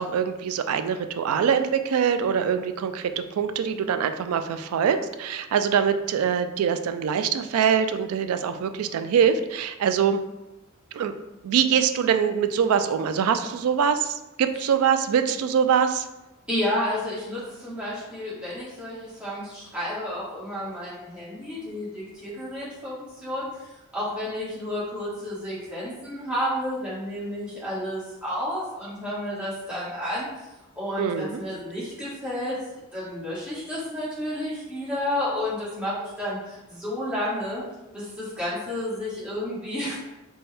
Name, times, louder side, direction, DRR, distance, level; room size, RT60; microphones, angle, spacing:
voice 1, 0.0-10.2 10.9-11.1 11.4-16.1 31.0-31.4, right 7 dB, 85° right, 10 dB, 0.3 m, -23 dB
voice 2, 16.5-30.5 30.7-32.6 32.9-37.6 37.9-40.0, left 1 dB, 5° right, -10 dB, 1.4 m, -31 dB
4.2 x 2.2 x 3.3 m, 0.99 s
head